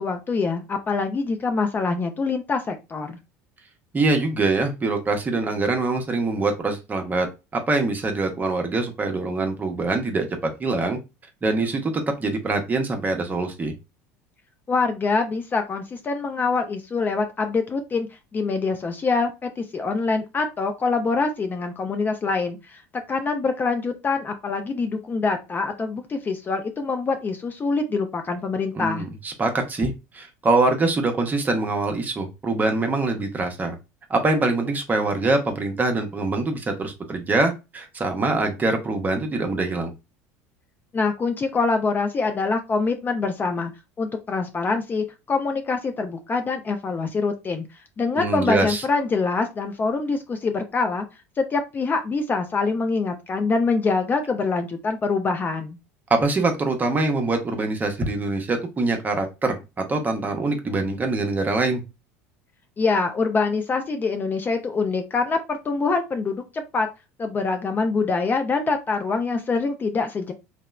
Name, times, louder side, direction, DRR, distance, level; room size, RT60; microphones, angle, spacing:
voice 1, 0.0-3.2 14.7-18.1 18.3-22.8 23.1-29.1 40.9-43.7 44.0-47.6 48.0-51.0 51.4-55.8 62.8-66.9 67.2-70.3, left 4 dB, 25° left, 6 dB, 0.4 m, -25 dB
voice 2, 3.9-7.3 7.5-11.0 11.4-13.7 28.7-33.8 34.1-39.9 48.1-48.8 56.1-61.8, right 3 dB, 25° right, 5 dB, 0.7 m, -24 dB
2.8 x 2.0 x 2.3 m, 0.26 s
hypercardioid pair, 85°, 7 cm